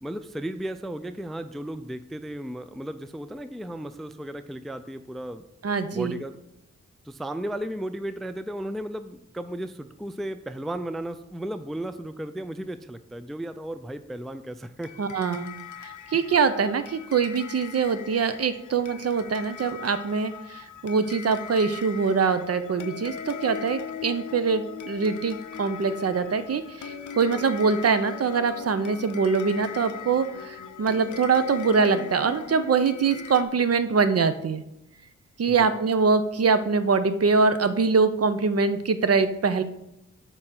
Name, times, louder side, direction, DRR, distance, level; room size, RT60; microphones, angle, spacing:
voice 1, 0.0-5.4 5.9-6.4 7.1-14.9 16.1-16.2 35.6-35.7, right 1 dB, ahead, 11 dB, 0.3 m, -35 dB
voice 2, 5.6-6.1 15.0-15.5 15.8-34.6 35.4-39.6, right 5 dB, 55° right, 11 dB, 0.6 m, -23 dB
sound 1, 14.8-33.4, left 8 dB, 90° left, 0.6 m, -40 dB
6.6 x 4.7 x 5.8 m, 0.86 s
wide cardioid pair, 100°, 29 cm